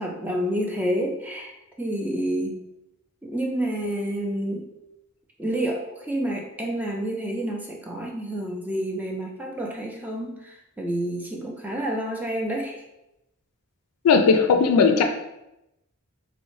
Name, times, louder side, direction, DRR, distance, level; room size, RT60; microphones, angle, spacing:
voice 1, 0.0-1.5 1.8-2.6 3.2-4.7 5.4-12.8, right 1 dB, 5° right, 0 dB, 0.3 m, -29 dB
voice 2, 14.0-15.0, left 5 dB, 85° left, 5 dB, 0.3 m, -17 dB
3.9 x 2.1 x 3.0 m, 0.90 s
head